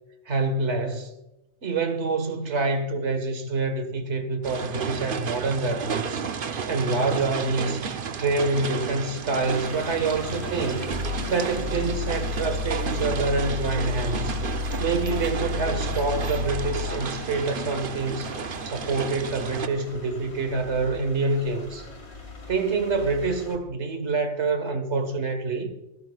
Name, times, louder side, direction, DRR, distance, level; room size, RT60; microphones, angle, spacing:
voice 1, 0.3-1.1 1.6-6.2 6.7-7.9 8.2-10.9 11.3-14.4 14.8-18.3 18.6-21.9 22.5-25.7, right 3 dB, 70° right, 1.8 m, -26 dB
sound 1, 4.4-19.7, right 6 dB, 50° right, 0.9 m, -33 dB
sound 2, 9.4-23.6, left 2 dB, 60° left, 2.4 m, -42 dB
sound 3, 10.9-17.1, left 4 dB, 35° right, 1.9 m, -31 dB
25.5 x 11.5 x 2.4 m
omnidirectional pair, 1.2 m